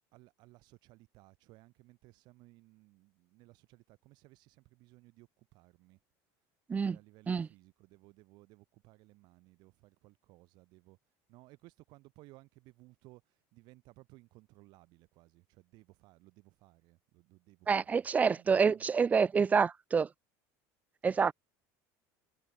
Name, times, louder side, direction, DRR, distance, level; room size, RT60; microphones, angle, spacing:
voice 1, 0.1-6.0 6.8-11.0 11.3-13.2 13.5-18.1 18.3-18.9, right 21 dB, 60° right, 4.4 m, -60 dB
voice 2, 17.7-20.1 21.0-21.3, right 5 dB, 20° right, 0.4 m, -27 dB
cardioid pair, 140°, 8 cm